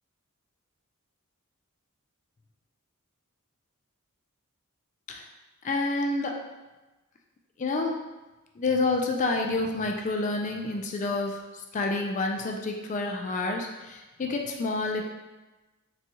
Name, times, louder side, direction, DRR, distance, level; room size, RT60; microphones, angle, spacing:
voice 1, 5.6-6.4 7.6-8.0 8.6-11.4 11.7-15.0, left 3 dB, 35° left, 2 dB, 0.3 m, -28 dB
3.9 x 2.3 x 2.8 m, 1.1 s
head